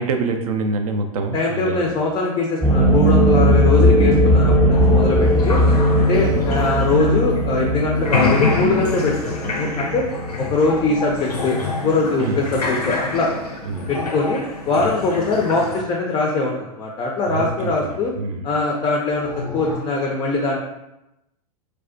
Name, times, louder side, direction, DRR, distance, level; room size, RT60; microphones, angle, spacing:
voice 1, 0.0-1.9 6.2-6.4 12.2-12.4 13.7-13.9 17.3-18.4, right 3 dB, 65° right, 5 dB, 0.4 m, -26 dB
voice 2, 1.3-5.6 6.0-10.0 10.4-13.3 13.9-14.4 14.7-18.1 18.4-20.6, left 3 dB, 20° left, -1 dB, 0.4 m, -22 dB
sound 1, 2.6-12.1 12.4-12.5 12.7-12.8 19.2-19.7, equal, 5° right, 0.8 m, -18 dB
sound 2, 4.7-7.7 8.0-15.8, left 4 dB, 85° left, 0.5 m, -27 dB
2.3 x 2.1 x 2.4 m, 0.89 s
figure-of-eight pair, 90°, 20 cm